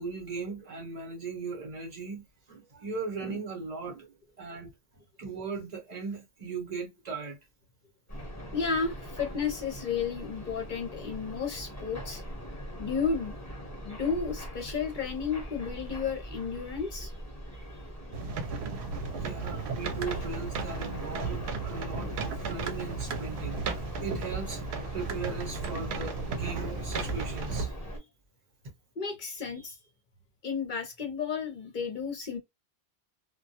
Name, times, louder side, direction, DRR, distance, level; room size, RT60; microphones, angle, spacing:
voice 1, 0.0-4.1 4.4-4.7 5.2-7.4 19.2-24.6 24.9-28.0, right 4 dB, 45° right, 0.9 m, -38 dB
sound 1, 8.1-28.0, equal, 15° left, 0.8 m, -41 dB
voice 2, 8.5-12.2 12.8-13.3 13.8-17.1 29.0-29.8 30.4-32.4, left 5 dB, 55° left, 0.7 m, -32 dB
sound 2, 18.1-27.7, right 5 dB, 80° right, 0.8 m, -35 dB
2.2 x 2.1 x 2.7 m
omnidirectional pair, 1.1 m